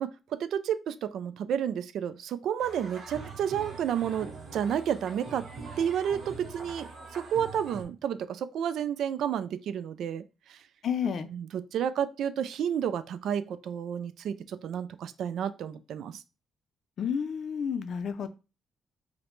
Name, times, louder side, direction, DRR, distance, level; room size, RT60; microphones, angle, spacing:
voice 1, 0.0-5.5 5.8-10.2 10.5-10.6 11.3-16.2, right 9 dB, 75° right, 0.3 m, -31 dB
sound 1, 2.6-7.8, right 4 dB, 55° right, 1.1 m, -43 dB
voice 2, 10.8-11.3 17.0-18.3, left 7 dB, 60° left, 0.4 m, -30 dB
4.8 x 2.1 x 3.1 m
cardioid pair, 90°, 0 cm